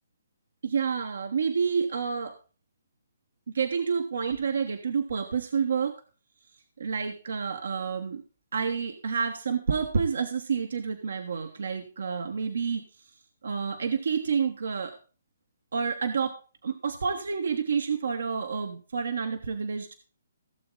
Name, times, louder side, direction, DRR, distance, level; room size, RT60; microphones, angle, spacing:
voice 1, 0.6-2.4 3.5-6.0 6.8-8.2 8.5-13.0 13.4-15.0 15.7-19.9, right 6 dB, 75° right, 7 dB, 1.2 m, -29 dB
15.5 x 7.2 x 3.8 m, 0.35 s
hypercardioid pair, 145°, 0 cm